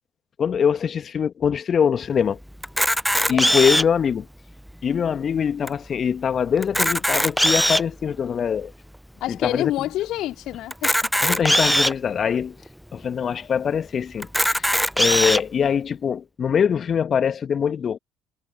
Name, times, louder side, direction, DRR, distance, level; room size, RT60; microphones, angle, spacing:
voice 1, 0.4-2.4 3.3-4.3 4.8-8.7 9.3-9.7 11.2-12.6 12.9-14.7 15.0-18.0, left 7 dB, 45° left, 2.1 m, -23 dB
Camera, 2.6-4.0 4.7-4.8 5.0-5.1 5.7-5.8 6.6-7.9 8.6-8.7 10.7-11.9 12.7-12.8 13.0-13.1 14.2-15.4, equal, ahead, 0.4 m, -20 dB
voice 2, 3.3-3.7 9.2-11.1, left 15 dB, 60° left, 3.1 m, -28 dB
hypercardioid pair, 55°, 0 cm